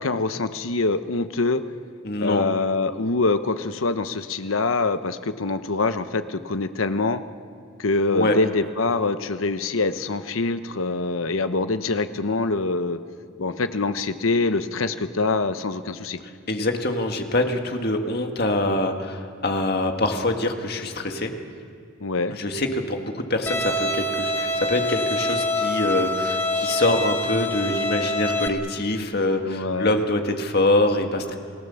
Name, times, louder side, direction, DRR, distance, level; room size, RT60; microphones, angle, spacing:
voice 1, 0.0-1.6 2.2-7.2 7.8-13.0 13.4-16.2 22.0-22.3 29.5-30.0, left 3 dB, 75° left, 11 dB, 1.0 m, -24 dB
voice 2, 2.0-2.5 8.1-8.4 16.5-21.3 22.3-31.4, left 1 dB, 50° left, 4 dB, 1.8 m, -24 dB
Bowed string instrument, 23.5-28.5, left 1 dB, 10° left, 1.2 m, -25 dB
29.0 x 19.0 x 7.1 m, 2.2 s
head